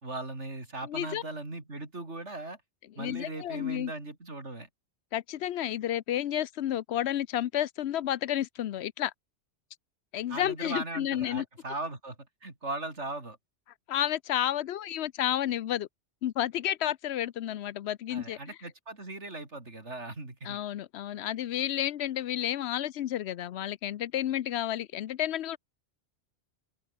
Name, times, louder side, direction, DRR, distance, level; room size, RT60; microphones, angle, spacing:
voice 1, 0.0-2.6 2.9-4.7 10.3-13.4 18.1-20.6, right 2 dB, 90° right, 4.8 m, -38 dB
voice 2, 0.9-1.2 3.0-3.9 5.1-9.1 10.1-11.4 13.9-15.9 16.2-18.4 20.4-25.6, left 11 dB, 70° left, 0.9 m, -31 dB
omnidirectional pair, 1.2 m